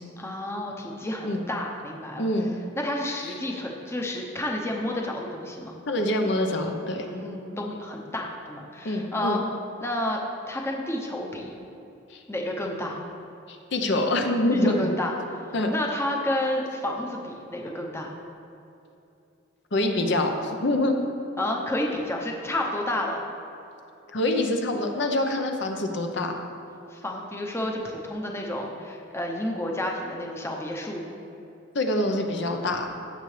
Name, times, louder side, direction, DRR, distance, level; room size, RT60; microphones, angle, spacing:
voice 1, 0.2-2.3 2.8-5.8 6.9-9.4 9.8-10.2 10.5-11.5 12.3-13.0 14.5-15.4 15.7-18.1 21.4-23.2 26.9-31.0, left 1 dB, 15° left, 0 dB, 0.8 m, -30 dB
voice 2, 2.2-2.5 3.2-3.3 5.9-7.1 8.8-9.4 12.1-12.2 13.5-14.9 15.5-15.7 19.7-21.0 24.1-26.4 31.7-32.9, left 1 dB, 60° left, 3 dB, 0.8 m, -25 dB
16.0 x 6.7 x 3.3 m, 2.8 s
head